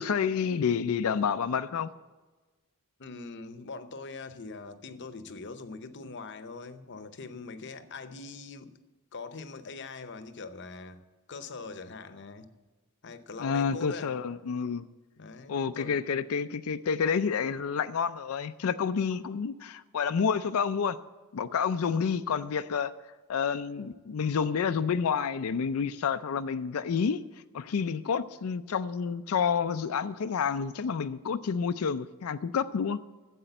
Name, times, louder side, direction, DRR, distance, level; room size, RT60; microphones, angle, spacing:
voice 1, 0.0-1.9 13.4-14.8 15.5-21.0 21.3-22.9 23.3-27.2 27.5-33.0, left 6 dB, 75° left, 0.4 m, -29 dB
voice 2, 3.0-8.8 9.1-11.0 11.3-12.5 13.0-14.2 15.2-16.0, left 4 dB, 55° left, 0.8 m, -42 dB
10.0 x 7.5 x 7.9 m
head